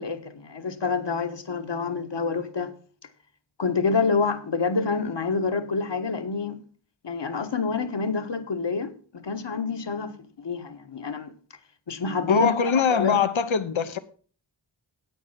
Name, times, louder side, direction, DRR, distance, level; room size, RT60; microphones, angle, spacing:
voice 1, 0.0-2.7 3.6-6.6 7.0-11.3 11.9-13.2, left 4 dB, 60° left, 1.4 m, -27 dB
voice 2, 12.3-14.0, left 6 dB, 80° left, 0.9 m, -23 dB
9.2 x 8.4 x 5.8 m
wide cardioid pair, 70°, 47 cm